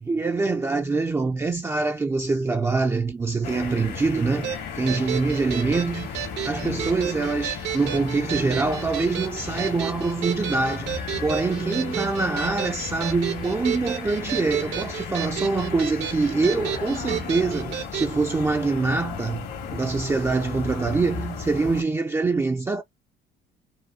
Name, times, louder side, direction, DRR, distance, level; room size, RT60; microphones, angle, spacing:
voice 1, 0.0-22.8, right 3 dB, 15° right, 0.4 m, -25 dB
sound 1, 3.4-21.8, left 6 dB, 80° left, 1.9 m, -35 dB
sound 2, 4.4-18.1, right 10 dB, 85° right, 1.3 m, -32 dB
5.3 x 2.0 x 2.7 m
cardioid pair, 110°, 17 cm